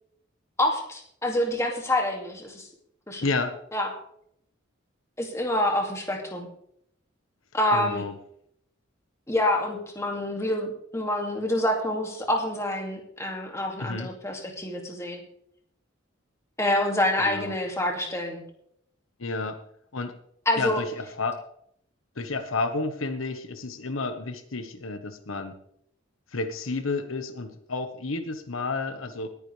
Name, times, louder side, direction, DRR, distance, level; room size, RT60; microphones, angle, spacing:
voice 1, 0.6-2.7 3.1-3.3 3.7-3.9 5.2-6.5 7.5-8.0 9.3-15.2 16.6-18.4 20.5-20.8, left 1 dB, 15° left, 2 dB, 2.3 m, -27 dB
voice 2, 3.2-3.6 7.7-8.1 13.8-14.1 17.2-17.5 19.2-19.6 19.9-20.2 20.6-21.4 22.2-25.6 26.3-29.3, left 3 dB, 90° left, 8 dB, 1.3 m, -31 dB
20.0 x 10.0 x 3.3 m, 0.68 s
head